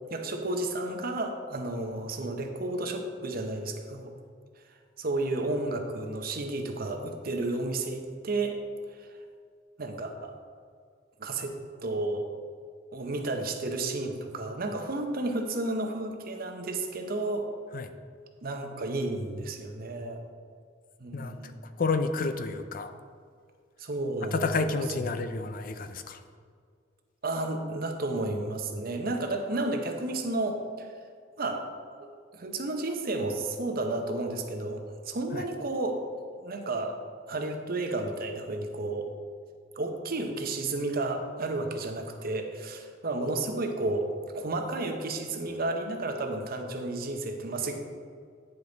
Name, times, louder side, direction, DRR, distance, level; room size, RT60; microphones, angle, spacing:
voice 1, 0.1-4.1 5.0-8.6 9.0-9.1 9.8-10.3 11.2-11.6 11.8-12.2 12.9-17.5 18.4-20.2 21.0-21.6 23.8-25.3 27.2-30.9 31.4-31.7 32.0-36.0 36.4-37.0 37.3-39.1 39.8-47.7, right 2 dB, 50° right, 4 dB, 0.8 m, -32 dB
voice 2, 21.8-22.9 24.3-26.2 35.3-35.5, left 4 dB, 45° left, 9 dB, 0.5 m, -30 dB
9.3 x 5.3 x 3.9 m, 2.1 s
head